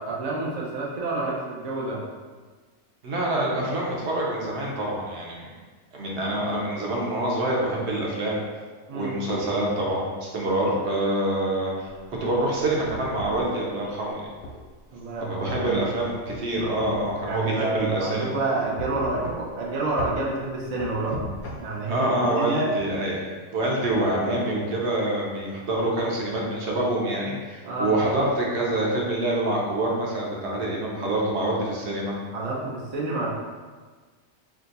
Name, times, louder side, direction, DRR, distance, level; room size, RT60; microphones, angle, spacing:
voice 1, 0.0-2.0 8.9-9.2 14.9-16.1 17.2-21.1 21.6-22.7 27.6-28.0 32.3-33.3, right 2 dB, 85° right, -4 dB, 0.3 m, -29 dB
voice 2, 3.0-5.5 5.9-8.4 8.9-11.9 12.2-14.2 15.3-18.3 21.9-32.1, right 1 dB, 60° right, -3 dB, 0.8 m, -26 dB
sound 1, 12.0-13.5 14.4-14.6 15.5-17.5 17.7-17.9 18.8-19.7 20.0-20.2 20.8-21.6, equal, 85° left, 1.1 m, -37 dB
2.8 x 2.3 x 4.0 m, 1.4 s
omnidirectional pair, 1.5 m